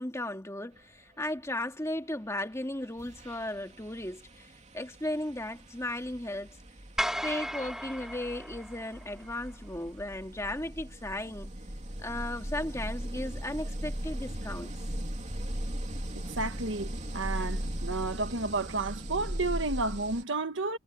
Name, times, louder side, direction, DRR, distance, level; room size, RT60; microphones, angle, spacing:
voice 1, 0.0-6.6 7.2-11.5 12.0-14.7, left 1 dB, 15° left, 2.4 m, -36 dB
sound 1, 2.4-2.6 3.0-20.2, equal, 35° right, 3.2 m, -38 dB
sound 2, 7.0-9.3, equal, 5° right, 1.8 m, -35 dB
voice 2, 16.1-20.8, right 3 dB, 65° right, 1.6 m, -32 dB
head